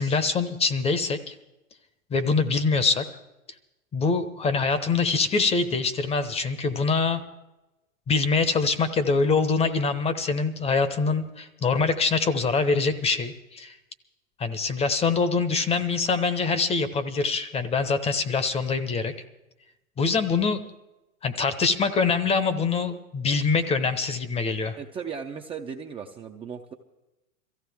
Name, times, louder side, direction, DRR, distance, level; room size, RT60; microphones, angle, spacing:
voice 1, 0.0-1.3 2.1-3.0 3.9-7.2 8.1-13.7 14.4-19.1 20.0-20.6 21.2-24.8, left 4 dB, 15° left, 13 dB, 0.9 m, -24 dB
voice 2, 24.8-26.7, right 6 dB, 15° right, 2 dB, 0.6 m, -36 dB
23.0 x 15.0 x 3.5 m, 0.98 s
hypercardioid pair, 115°, 41 cm